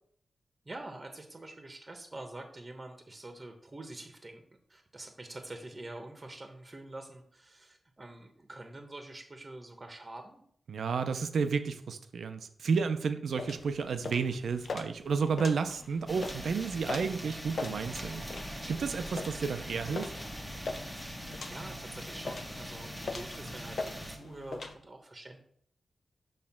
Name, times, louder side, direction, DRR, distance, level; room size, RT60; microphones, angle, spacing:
voice 1, 0.6-10.4 15.8-16.2 21.4-25.4, right 2 dB, 25° right, 4 dB, 1.0 m, -46 dB
voice 2, 10.7-20.1, right 5 dB, 85° right, 9 dB, 0.6 m, -32 dB
sound 1, 13.3-24.7, left 3 dB, 60° left, 0.7 m, -42 dB
sound 2, 16.1-24.2, equal, 5° left, 1.0 m, -42 dB
6.5 x 3.2 x 5.8 m, 0.63 s
wide cardioid pair, 110°, 0 cm